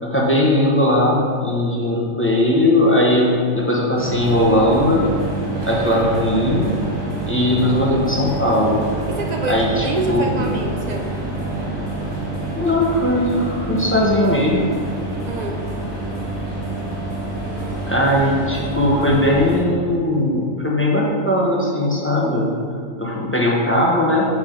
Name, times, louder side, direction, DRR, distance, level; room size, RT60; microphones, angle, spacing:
voice 1, 0.0-5.1 5.6-6.7 7.3-8.8 9.5-10.4 12.5-14.6 17.9-22.6 23.0-24.3, left 1 dB, 10° left, -4 dB, 0.8 m, -18 dB
sound 1, 4.0-19.6, right 2 dB, 85° right, 2.0 m, -27 dB
voice 2, 9.1-11.1 15.2-15.6, right 2 dB, 55° right, 2 dB, 0.4 m, -26 dB
6.6 x 5.9 x 3.9 m, 2.1 s
omnidirectional pair, 1.4 m